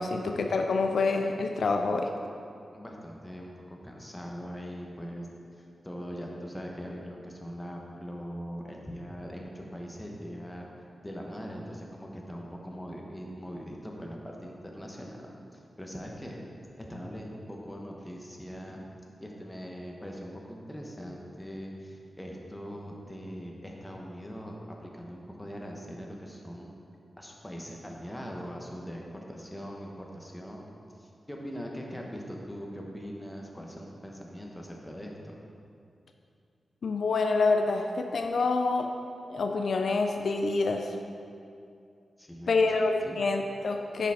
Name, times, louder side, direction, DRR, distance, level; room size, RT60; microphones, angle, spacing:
voice 1, 0.0-2.1 36.8-38.9 39.3-41.0 42.5-44.1, left 3 dB, 70° left, 4 dB, 0.4 m, -27 dB
voice 2, 2.7-5.3 5.5-10.7 11.0-16.4 16.8-18.9 19.2-24.5 24.8-26.7 27.2-30.7 31.0-35.3 42.2-42.7 43.1-43.2, equal, 10° left, -1 dB, 0.9 m, -41 dB
9.9 x 5.0 x 3.5 m, 2.5 s
wide cardioid pair, 135°, 0 cm